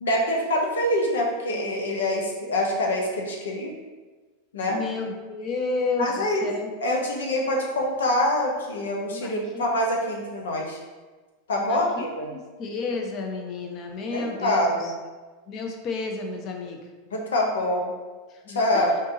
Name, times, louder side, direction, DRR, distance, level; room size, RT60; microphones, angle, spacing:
voice 1, 0.0-3.7 4.5-4.8 6.0-6.5 6.8-10.8 11.5-12.3 14.1-14.9 17.1-17.9 18.5-19.0, left 1 dB, 90° left, 0 dB, 0.8 m, -25 dB
voice 2, 4.7-6.7 9.1-9.6 11.6-12.0 12.3-14.9 15.5-16.8 18.4-18.8, left 3 dB, 40° left, 2 dB, 0.7 m, -31 dB
3.9 x 2.6 x 3.8 m, 1.3 s
hypercardioid pair, 115°, 0 cm